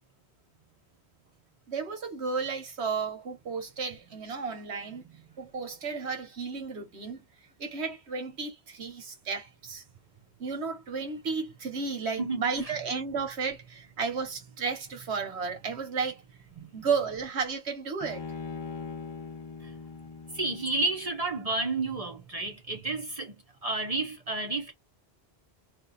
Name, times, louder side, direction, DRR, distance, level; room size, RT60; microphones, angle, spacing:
voice 1, 1.7-5.0 5.4-7.2 7.6-9.8 10.4-16.2 16.7-18.2, right 5 dB, 90° right, 1.3 m, -33 dB
voice 2, 12.0-12.7 16.5-16.9 19.6-19.7 20.3-23.4 23.6-24.7, right 3 dB, 40° right, 0.7 m, -31 dB
Bowed string instrument, 18.0-21.3, left 5 dB, 45° left, 0.3 m, -41 dB
2.7 x 2.4 x 3.9 m
omnidirectional pair, 1.1 m